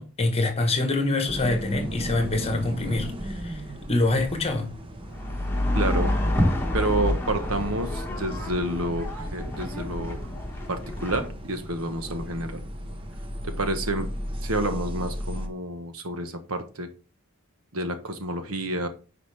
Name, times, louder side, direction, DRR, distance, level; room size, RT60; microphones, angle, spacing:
voice 1, 0.0-3.6 3.9-4.7, left 2 dB, 30° left, 1.4 m, -25 dB
sound 1, 1.3-15.5, equal, 25° right, 1.1 m, -36 dB
sound 2, 5.0-11.3, left 1 dB, 10° left, 1.7 m, -28 dB
voice 2, 5.7-6.1 6.7-10.2 10.7-12.6 13.4-14.1 14.4-16.9 17.7-18.9, right 1 dB, 70° right, 1.2 m, -29 dB
9.8 x 5.0 x 3.5 m
head